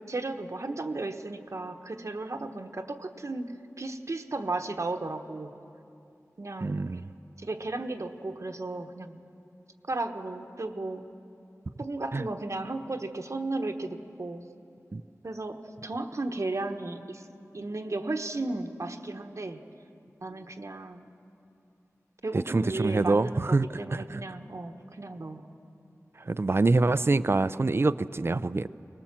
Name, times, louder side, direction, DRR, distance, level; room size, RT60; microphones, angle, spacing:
voice 1, 0.1-5.5 6.4-6.8 7.4-9.2 9.9-11.0 11.8-14.4 15.2-17.2 17.5-19.6 20.2-21.1 22.2-25.5, right 2 dB, 60° right, 6 dB, 1.2 m, -34 dB
voice 2, 6.6-7.0 12.1-12.2 14.9-15.0 22.3-24.2 26.3-28.7, right 3 dB, 45° right, 16 dB, 0.5 m, -25 dB
23.0 x 19.5 x 7.4 m, 2.7 s
wide cardioid pair, 70°, 6 cm